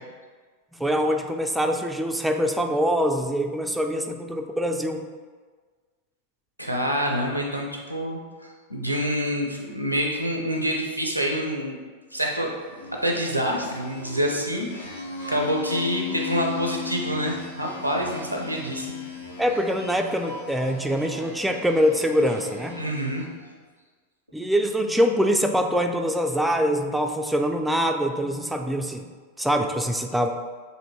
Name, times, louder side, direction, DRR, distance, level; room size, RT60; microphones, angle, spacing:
voice 1, 0.7-5.1 19.4-22.9 24.3-29.1 29.4-30.3, equal, 5° right, 3 dB, 0.3 m, -24 dB
voice 2, 6.6-11.8 12.1-12.5 12.9-15.0 15.3-18.9 22.7-23.3, equal, 90° right, 0 dB, 0.6 m, -27 dB
sound 1, 12.5-23.4, left 6 dB, 75° left, 0.7 m, -37 dB
6.6 x 2.6 x 2.8 m, 1.5 s
figure-of-eight pair, 90°, 0 cm